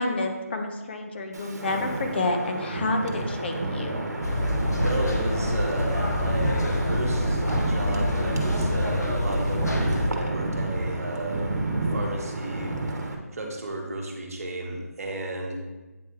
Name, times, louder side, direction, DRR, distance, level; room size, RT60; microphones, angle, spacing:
voice 1, 0.0-4.0, left 2 dB, 40° left, 4 dB, 0.8 m, -29 dB
Wind, 1.3-13.2, right 2 dB, 80° right, 1.1 m, -30 dB
sound 1, 4.2-10.1, left 1 dB, 80° left, 1.0 m, -26 dB
voice 2, 4.8-12.8 13.3-15.6, right 2 dB, 60° right, 1 dB, 1.3 m, -34 dB
8.9 x 3.3 x 3.3 m, 1.1 s
figure-of-eight pair, 155°, 9 cm